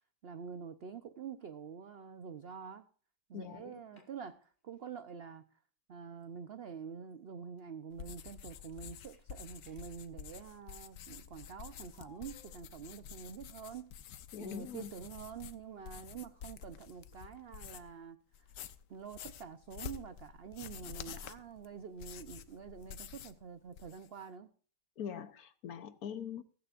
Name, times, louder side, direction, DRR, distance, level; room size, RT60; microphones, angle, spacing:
voice 1, 0.2-2.9 3.3-5.4 5.9-13.9 14.4-18.2 18.9-24.5, right 6 dB, 55° right, 0.7 m, -47 dB
voice 2, 3.3-4.0 14.3-14.9 25.0-26.4, left 8 dB, 65° left, 1.2 m, -43 dB
sound 1, 3.7-4.4 4.7-4.9 6.2-6.3 7.1-7.6 8.5-10.1 11.9-12.6, left 4 dB, 30° left, 2.3 m, -64 dB
sound 2, 7.9-18.0 18.3-23.4 23.7-24.2, left 9 dB, 85° left, 1.4 m, -49 dB
15.5 x 15.0 x 2.5 m
omnidirectional pair, 1.8 m